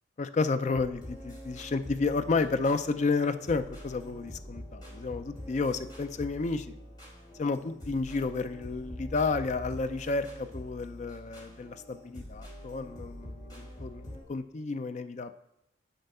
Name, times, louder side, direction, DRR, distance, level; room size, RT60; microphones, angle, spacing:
voice 1, 0.2-6.7 7.4-15.3, left 3 dB, 40° left, 11 dB, 0.4 m, -31 dB
sound 1, 0.7-14.2, equal, 20° left, 3.2 m, -45 dB
7.8 x 4.5 x 5.4 m, 0.86 s
head